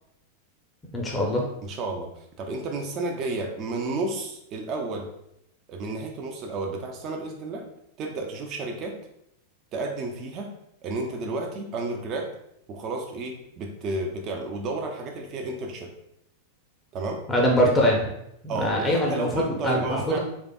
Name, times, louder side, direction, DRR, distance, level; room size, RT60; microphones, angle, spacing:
voice 1, 0.9-1.4 17.3-18.0 18.4-20.2, equal, 15° left, -2 dB, 0.6 m, -23 dB
voice 2, 1.6-5.1 5.7-7.7 8.0-9.0 9.7-10.5 10.8-12.3 12.7-15.9 16.9-17.2 18.5-20.2, right 2 dB, 35° right, 2 dB, 0.4 m, -32 dB
3.6 x 3.2 x 2.2 m, 0.79 s
figure-of-eight pair, 90°, 0 cm